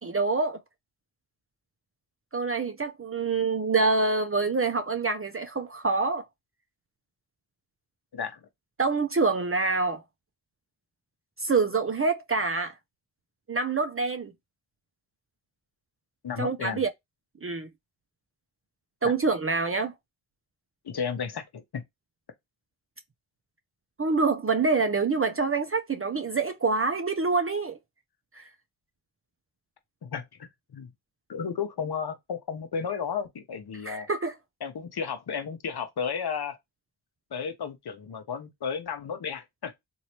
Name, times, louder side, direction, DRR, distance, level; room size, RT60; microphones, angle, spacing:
voice 1, 0.0-0.6 2.3-6.2 8.8-10.0 11.4-12.7 13.5-14.3 16.4-16.9 17.4-17.7 19.0-19.9 24.0-27.8 28.3-28.5 33.8-34.3, right 4 dB, 30° right, 0.6 m, -26 dB
voice 2, 16.2-16.8 19.0-19.1 20.8-21.8 30.0-30.9 31.3-34.1 34.6-36.6 37.3-39.7, left 6 dB, 60° left, 1.0 m, -33 dB
3.1 x 2.7 x 2.9 m
cardioid pair, 45°, 43 cm